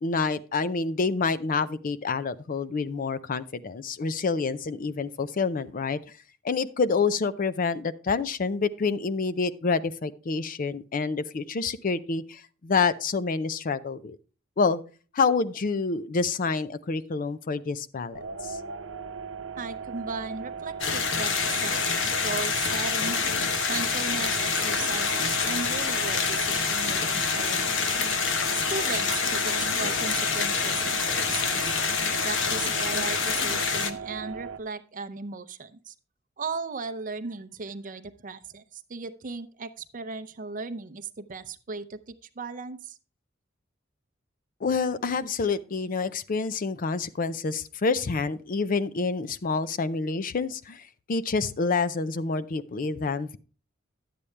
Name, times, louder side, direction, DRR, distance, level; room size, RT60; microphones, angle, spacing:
voice 1, 0.0-6.0 6.4-14.2 14.6-14.8 15.1-18.6 44.6-53.4, left 4 dB, 45° left, 15 dB, 0.5 m, -28 dB
sound 1, 18.1-34.6, right 6 dB, 85° right, 0.8 m, -38 dB
voice 2, 19.6-21.9 22.2-23.2 23.7-28.0 28.5-31.8 32.2-35.9 36.4-43.0, right 4 dB, 45° right, 12 dB, 0.6 m, -36 dB
sound 2, 20.8-33.9, left 5 dB, 70° left, 0.9 m, -27 dB
11.0 x 8.5 x 3.3 m, 0.35 s
head